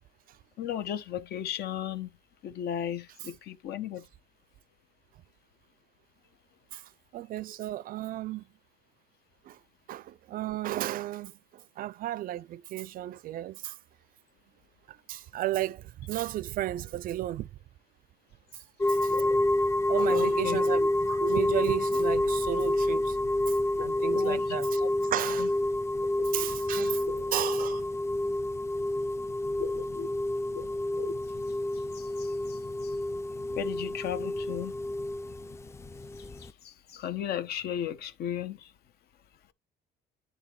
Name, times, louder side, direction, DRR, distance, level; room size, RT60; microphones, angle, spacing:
voice 1, 0.6-2.1 2.4-4.1 19.1-19.4 20.1-20.6 23.8-24.9 25.4-25.5 26.3-26.5 27.1-27.4 29.6-30.1 30.5-31.2 31.9-33.0 33.5-34.7 36.4-38.7, left 10 dB, 70° left, 1.0 m, -36 dB
voice 2, 6.7-8.4 9.4-9.6 9.9-13.8 14.9-17.5 18.9-19.1 19.9-23.2 23.5-25.5 26.3-27.0 27.3-27.9, right 14 dB, 55° right, 0.4 m, -34 dB
sound 1, 18.8-36.5, left 1 dB, 15° left, 0.4 m, -28 dB
10.5 x 3.6 x 3.1 m
cardioid pair, 110°, 17 cm